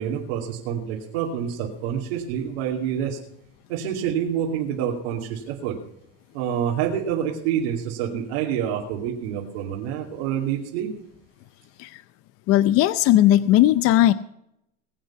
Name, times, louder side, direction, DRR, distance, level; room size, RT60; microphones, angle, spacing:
voice 1, 0.0-3.2 3.7-5.8 6.3-10.9, right 9 dB, 90° right, -3 dB, 2.7 m, -27 dB
voice 2, 12.5-14.1, left 13 dB, 50° left, 15 dB, 0.6 m, -17 dB
21.5 x 8.2 x 5.8 m, 0.78 s
supercardioid pair, 135°, 30 cm